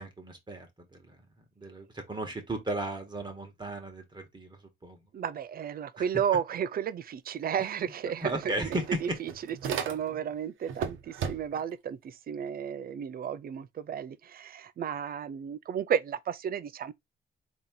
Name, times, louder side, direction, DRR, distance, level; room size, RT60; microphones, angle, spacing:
voice 1, 0.0-4.6 4.8-5.0 6.0-6.1 8.2-9.0, right 1 dB, 25° right, 1.5 m, -36 dB
voice 2, 5.1-16.9, right 8 dB, 50° right, 0.5 m, -33 dB
sound 1, 7.7-7.8 8.1-10.3 10.7-11.7, right 7 dB, 80° right, 0.9 m, -36 dB
3.7 x 3.0 x 3.7 m
cardioid pair, 90°, 20 cm